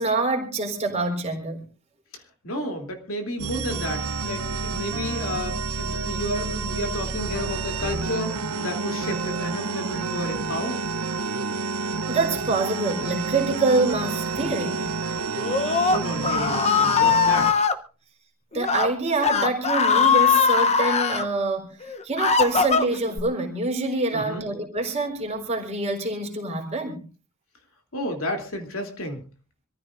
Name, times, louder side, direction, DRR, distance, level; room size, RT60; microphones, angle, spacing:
voice 1, 0.0-1.6 12.1-14.9 18.5-21.8 22.0-27.0, right 3 dB, 30° right, 3.9 m, -26 dB
voice 2, 2.1-10.8 15.9-17.6 24.1-24.5 27.9-29.2, left 1 dB, 65° left, 3.1 m, -32 dB
sound 1, 3.4-17.5, right 4 dB, 85° right, 0.9 m, -29 dB
Screaming, 15.4-17.7 18.5-18.9 19.2-21.2 21.8-23.2, left 6 dB, 30° left, 0.9 m, -21 dB
26.0 x 14.5 x 2.6 m
head